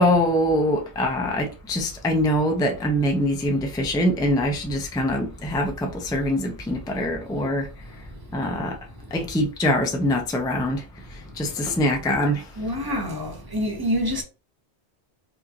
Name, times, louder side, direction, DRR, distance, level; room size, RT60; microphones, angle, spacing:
voice 1, 0.0-7.7 8.3-8.8 9.1-10.8 11.4-12.4, left 1 dB, 5° left, 0.3 m, -23 dB
voice 2, 12.6-14.2, equal, 20° right, 0.9 m, -26 dB
4.8 x 2.6 x 2.8 m
omnidirectional pair, 1.1 m